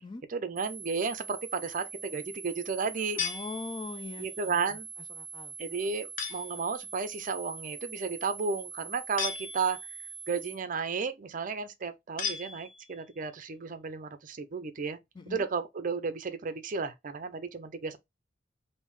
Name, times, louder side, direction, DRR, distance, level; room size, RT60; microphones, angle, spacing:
voice 1, 0.3-3.2 4.2-4.9 5.6-9.8 10.3-15.0 15.3-18.0, right 5 dB, 50° right, 0.5 m, -33 dB
sound 1, 0.6-10.6, right 5 dB, 25° right, 1.3 m, -44 dB
sound 2, 3.2-4.1 6.2-6.7 9.2-10.0 12.2-13.1, left 6 dB, 50° left, 0.8 m, -36 dB
voice 2, 3.2-4.8 5.1-5.5 15.1-15.4, left 3 dB, 25° left, 0.4 m, -41 dB
3.5 x 2.6 x 3.0 m
head